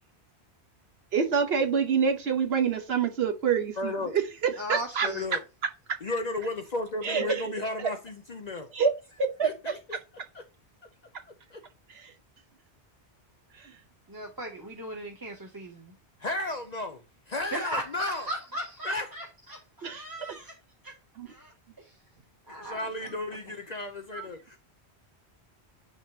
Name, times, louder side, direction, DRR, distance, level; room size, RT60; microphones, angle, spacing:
voice 1, 1.1-4.2 4.7-5.1 7.0-7.4 8.7-8.9 9.4-9.5 19.8-20.0 21.2-21.3 24.1-24.2, right 6 dB, 70° right, 1.2 m, -26 dB
voice 2, 3.8-4.1 5.0-5.4 6.0-8.7 9.4-10.0 10.3-10.4 11.5-11.6 16.2-17.0 17.3-18.3 18.8-19.1 22.5-24.6, left 2 dB, 45° left, 0.7 m, -34 dB
voice 3, 4.6-5.3 14.1-15.9 17.5-20.5 20.8-20.9 21.3-21.9 22.5-23.1, right 1 dB, 20° right, 0.8 m, -37 dB
9.7 x 3.5 x 2.8 m
omnidirectional pair, 1.1 m